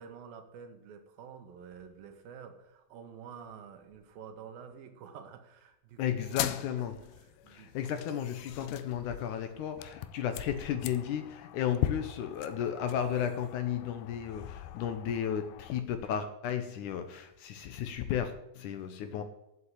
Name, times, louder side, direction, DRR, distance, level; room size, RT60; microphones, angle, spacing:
voice 1, 0.0-6.0 6.6-6.7 7.4-8.0, right 7 dB, 80° right, 7 dB, 3.0 m, -49 dB
voice 2, 6.0-7.1 7.5-19.2, left 9 dB, 70° left, 8 dB, 2.0 m, -34 dB
sound 1, 6.2-15.8, left 13 dB, 90° left, 2.5 m, -40 dB
8.4 x 7.9 x 8.0 m, 0.93 s
omnidirectional pair, 4.2 m